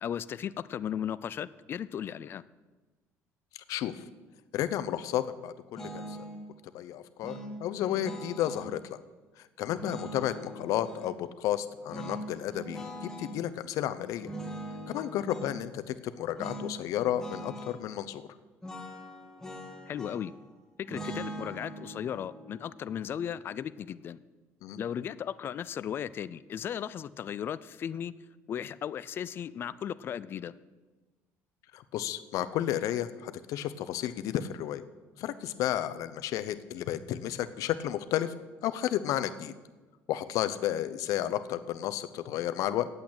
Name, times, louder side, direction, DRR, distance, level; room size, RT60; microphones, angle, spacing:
voice 1, 0.0-2.4 19.9-20.3 20.8-24.2 24.8-28.1 28.5-30.5, left 9 dB, 40° left, 16 dB, 0.4 m, -36 dB
voice 2, 3.7-4.0 4.5-6.2 6.7-7.3 7.6-9.0 9.4-14.3 14.9-18.3 24.6-24.8 31.7-34.8 35.2-38.3 38.6-39.5 40.1-42.9, left 12 dB, 70° left, 12 dB, 0.7 m, -32 dB
sound 1, 5.8-6.4 7.2-8.7 9.7-11.1 11.9-13.4 14.2-15.6 16.4-16.7 17.0-17.8 18.6-20.4 20.9-24.0, right 1 dB, 10° left, 1.6 m, -42 dB
8.5 x 7.9 x 8.7 m, 1.3 s
cardioid pair, 130°, 6 cm